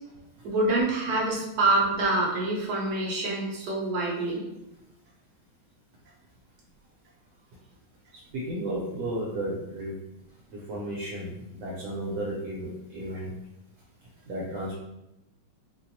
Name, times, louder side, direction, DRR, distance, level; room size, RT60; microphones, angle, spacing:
voice 1, 0.4-4.4, right 2 dB, 60° right, -4 dB, 1.2 m, -26 dB
voice 2, 8.1-10.0 10.5-13.3 14.3-14.7, right 1 dB, 75° right, -4 dB, 1.4 m, -33 dB
4.4 x 2.0 x 2.7 m, 0.89 s
omnidirectional pair, 2.3 m